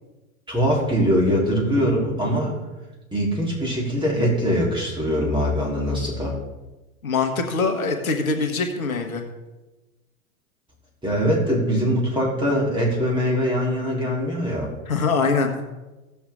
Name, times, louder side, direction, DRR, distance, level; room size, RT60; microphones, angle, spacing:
voice 1, 0.5-2.5 3.1-6.3 11.0-14.7, equal, 10° right, -4 dB, 3.6 m, -22 dB
voice 2, 7.0-9.2 14.9-15.5, left 4 dB, 80° left, 5 dB, 1.5 m, -23 dB
16.0 x 7.1 x 3.7 m, 1.1 s
hypercardioid pair, 95°, 42 cm